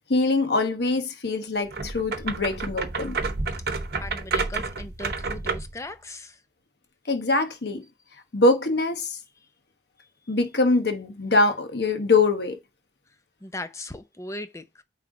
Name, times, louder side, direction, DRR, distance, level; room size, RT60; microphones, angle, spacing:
voice 1, 0.1-3.2 7.1-7.8 8.3-9.2 10.3-12.6, left 2 dB, 65° left, 1.1 m, -23 dB
sound 1, 1.7-5.8, right 4 dB, 60° right, 0.9 m, -30 dB
voice 2, 4.0-6.4 13.4-14.8, left 2 dB, 15° left, 0.6 m, -38 dB
9.0 x 3.4 x 3.8 m
head